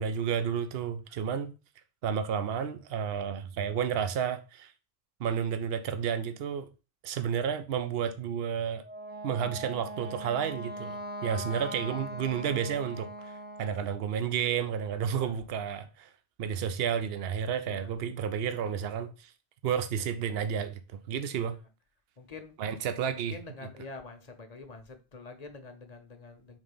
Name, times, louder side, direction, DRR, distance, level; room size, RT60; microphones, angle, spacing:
voice 1, 0.0-1.5 2.0-4.7 5.2-6.7 7.0-8.8 9.2-16.1 16.4-19.3 19.6-21.6 22.6-23.3, right 8 dB, 70° right, 0.9 m, -31 dB
Wind instrument woodwind instrument, 8.8-13.8, right 1 dB, 10° right, 0.6 m, -40 dB
voice 2, 22.2-22.5 23.2-26.6, left 3 dB, 40° left, 1.0 m, -46 dB
5.1 x 3.8 x 5.4 m
omnidirectional pair, 1.1 m